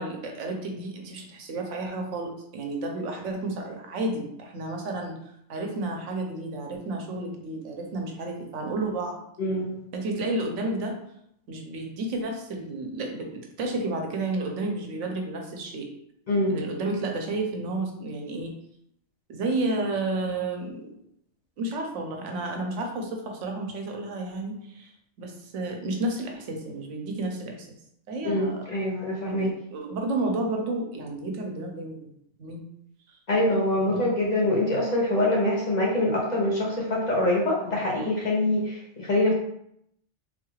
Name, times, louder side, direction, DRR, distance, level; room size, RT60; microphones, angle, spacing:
voice 1, 0.0-5.1 5.5-9.2 9.9-11.0 11.5-15.9 16.5-18.5 19.3-20.9 21.6-24.9 25.2-27.7 28.1-28.6 29.2-32.0 32.4-32.6 33.1-33.2, right 2 dB, 85° right, 2 dB, 1.0 m, -31 dB
voice 2, 9.4-9.7 16.3-16.6 28.2-29.5 33.3-39.3, left 1 dB, 45° left, -3 dB, 0.7 m, -24 dB
3.9 x 2.3 x 3.1 m, 0.74 s
omnidirectional pair, 1.2 m